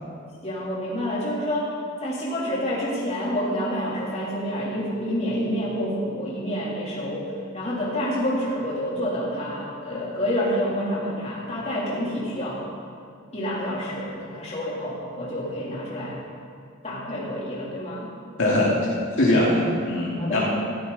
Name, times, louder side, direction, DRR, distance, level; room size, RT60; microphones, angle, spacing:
voice 1, 0.4-1.7 2.0-12.6 13.3-16.2 16.8-18.1 20.2-20.4, equal, 30° left, -6 dB, 3.4 m, -28 dB
voice 2, 18.4-18.8 19.2-20.4, left 1 dB, 65° left, -5 dB, 2.3 m, -21 dB
14.5 x 13.5 x 4.1 m, 2.4 s
head